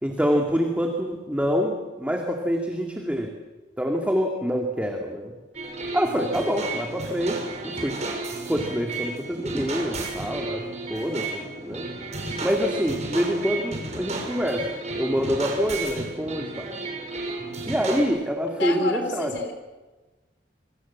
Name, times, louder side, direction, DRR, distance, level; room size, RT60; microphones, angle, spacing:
voice 1, 0.0-1.7 2.0-3.3 3.8-5.3 5.9-8.0 8.5-10.6 10.9-11.9 12.4-14.7 14.9-16.7 17.7-19.3, equal, 10° right, 2 dB, 2.4 m, -26 dB
sound 1, 5.5-18.0, right 2 dB, 40° right, 6.4 m, -33 dB
voice 2, 18.6-19.5, left 2 dB, 80° left, 5 dB, 3.5 m, -29 dB
27.5 x 25.0 x 7.3 m, 1.2 s
head